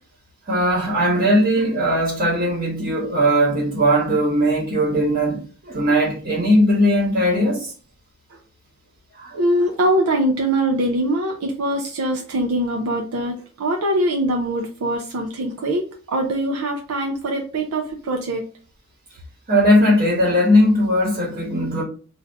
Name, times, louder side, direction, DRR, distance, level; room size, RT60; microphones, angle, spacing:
voice 1, 0.5-7.7 9.2-9.4 19.5-21.8, equal, 40° right, 1.0 m, -18 dB
voice 2, 9.3-18.5, right 1 dB, 90° right, 0.5 m, -22 dB
2.6 x 2.4 x 3.3 m
head